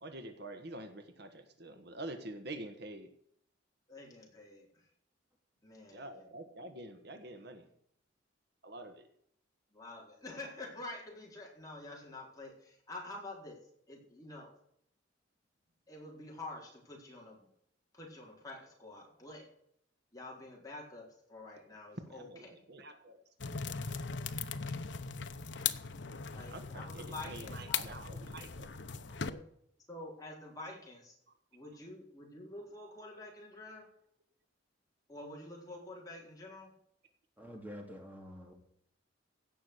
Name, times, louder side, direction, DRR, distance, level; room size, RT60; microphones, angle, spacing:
voice 1, 0.0-3.1 5.9-7.7 8.6-9.1 22.1-24.0 26.5-28.8, right 1 dB, 60° right, 7 dB, 1.5 m, -47 dB
voice 2, 3.9-4.9 5.6-6.3 9.7-13.6 13.9-14.5 15.9-17.5 17.9-19.5 20.1-22.6 26.3-28.1 29.3-29.4 29.9-31.2 31.5-33.9 35.1-36.7, left 2 dB, 20° left, -2 dB, 4.2 m, -48 dB
sound 1, 23.4-29.3, left 6 dB, 70° left, 0.9 m, -39 dB
voice 3, 37.4-38.5, equal, 10° right, 2 dB, 2.9 m, -47 dB
16.5 x 6.4 x 8.2 m, 0.70 s
head